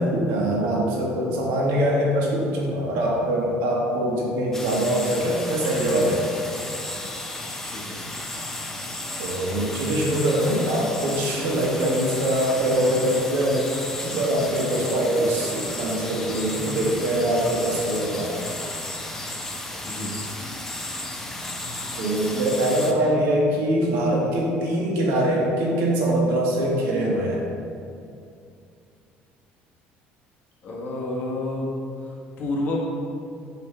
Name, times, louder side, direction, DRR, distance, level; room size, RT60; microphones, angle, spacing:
voice 1, 0.0-6.3 9.2-13.7 14.0-18.5 22.0-27.4, right 1 dB, 85° right, -3 dB, 1.5 m, -23 dB
sound 1, 4.5-22.9, left 1 dB, 10° left, 0.6 m, -33 dB
voice 2, 7.6-8.0 19.8-20.1 30.6-31.7 32.0-32.8, left 2 dB, 45° left, -3 dB, 1.4 m, -30 dB
6.6 x 3.4 x 5.5 m, 2.5 s
cardioid pair, 135°, 4 cm